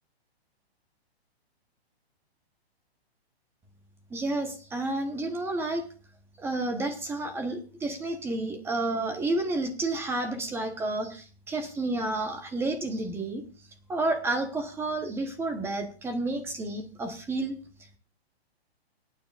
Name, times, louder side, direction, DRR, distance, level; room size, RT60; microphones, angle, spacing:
voice 1, 4.1-5.8 6.4-13.4 13.9-17.6, right 2 dB, 5° right, 7 dB, 1.0 m, -30 dB
27.5 x 9.3 x 2.5 m, 0.37 s
hypercardioid pair, 155°, 32 cm